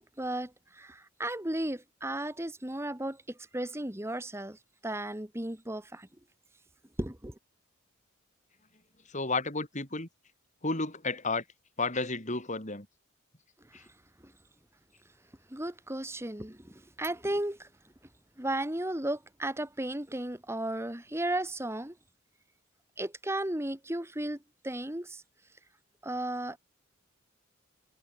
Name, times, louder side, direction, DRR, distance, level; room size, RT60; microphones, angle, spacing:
voice 1, 0.0-6.1 7.0-7.3 13.8-13.9 14.2-14.3 15.5-17.7 18.4-22.0 23.0-24.4 24.6-25.2 26.0-26.6, right 1 dB, 15° right, 2.0 m, -35 dB
voice 2, 9.1-10.1 10.6-11.4 11.8-12.9 13.7-13.8, left 3 dB, 35° left, 5.9 m, -32 dB
head